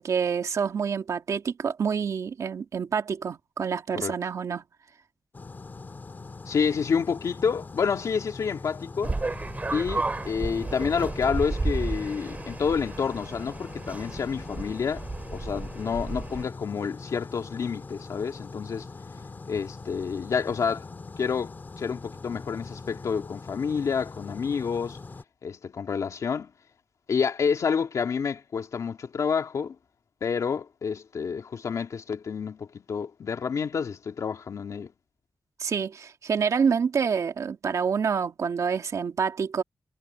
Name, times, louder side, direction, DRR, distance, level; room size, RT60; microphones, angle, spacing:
voice 1, 0.0-4.6 35.6-39.6, right 6 dB, 70° right, 2.1 m, -27 dB
sound 1, 5.3-25.2, left 3 dB, 35° left, 2.4 m, -42 dB
voice 2, 6.5-9.1 9.7-18.9 19.5-20.9 21.2-25.0 25.4-26.5 27.1-29.8 30.2-34.9, left 6 dB, 70° left, 2.3 m, -29 dB
sound 2, 9.0-16.5, right 3 dB, 25° right, 3.6 m, -33 dB
wide cardioid pair, 170°, 6 cm